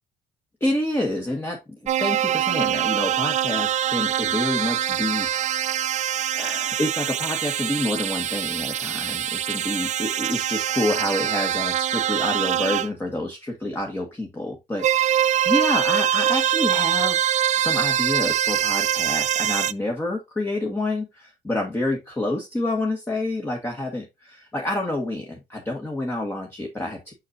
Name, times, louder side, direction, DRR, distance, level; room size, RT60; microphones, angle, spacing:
voice 1, 0.6-5.9 6.3-17.2 17.6-27.1, left 1 dB, 15° left, 1 dB, 1.6 m, -28 dB
sound 1, 1.9-12.9 14.8-19.7, right 11 dB, 45° right, 0.4 m, -24 dB
6.3 x 5.8 x 2.5 m, 0.22 s
cardioid pair, 110°, 17 cm